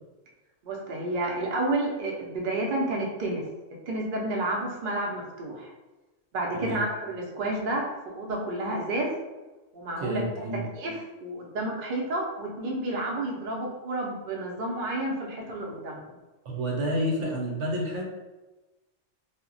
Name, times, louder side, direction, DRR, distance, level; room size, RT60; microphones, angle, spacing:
voice 1, 0.6-3.4 3.9-5.7 6.3-9.1 9.7-16.2, right 2 dB, 55° right, -1 dB, 0.6 m, -30 dB
voice 2, 10.0-10.6 16.4-18.1, equal, 75° right, -1 dB, 1.0 m, -29 dB
2.1 x 2.1 x 3.7 m, 1.1 s
omnidirectional pair, 1.2 m